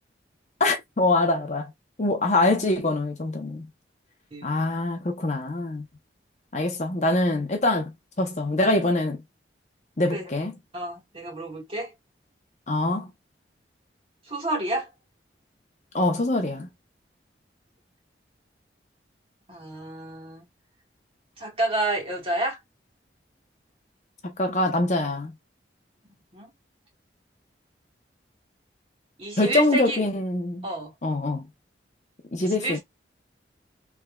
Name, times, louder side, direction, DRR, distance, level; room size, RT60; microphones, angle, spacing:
voice 1, 0.6-1.7 2.0-3.7 4.4-5.9 6.5-7.9 8.2-9.2 10.0-10.5 12.7-13.1 15.9-16.7 24.2-25.3 29.4-30.6 31.0-31.5 32.3-32.8, left 2 dB, 40° left, 0.8 m, -24 dB
voice 2, 10.7-11.9 14.3-14.9 19.5-20.5 21.4-22.6 26.0-26.5 29.2-30.0 30.6-30.9 32.4-32.8, right 1 dB, 30° right, 1.7 m, -30 dB
3.5 x 3.3 x 2.3 m
head